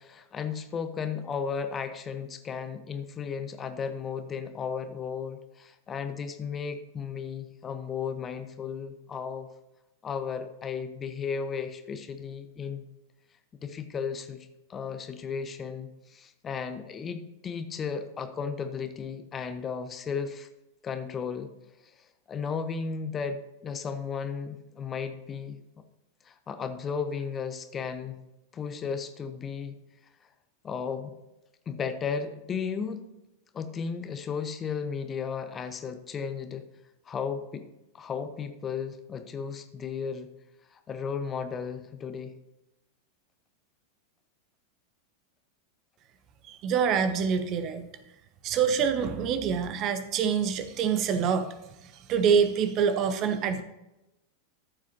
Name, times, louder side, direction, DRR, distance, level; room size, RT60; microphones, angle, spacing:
voice 1, 0.0-9.5 10.0-12.9 13.6-20.5 20.8-21.5 22.3-25.6 26.2-28.2 28.5-29.8 30.6-31.1 31.7-33.0 33.5-36.6 37.1-37.6 37.9-40.3 40.7-42.3, left 6 dB, 25° left, 9 dB, 0.8 m, -34 dB
voice 2, 46.5-47.9 48.4-51.5 52.1-53.6, right 6 dB, 35° right, 10 dB, 0.9 m, -26 dB
13.5 x 7.4 x 2.9 m, 0.93 s
figure-of-eight pair, 90°, 0 cm